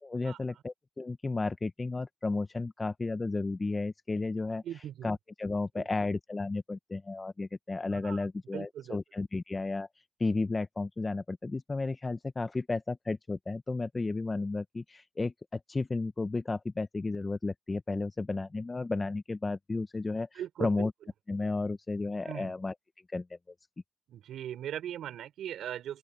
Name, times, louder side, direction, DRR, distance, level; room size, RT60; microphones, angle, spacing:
voice 1, 0.0-4.6 5.0-9.9 10.2-20.9 21.3-22.7 23.1-23.5, left 3 dB, 25° left, 0.8 m, -33 dB
voice 2, 4.6-5.1 5.8-5.9 7.9-8.3 8.5-9.0 20.3-20.9 22.2-22.5 24.1-26.0, right 10 dB, 75° right, 5.3 m, -39 dB
open air
cardioid pair, 90°, 0 cm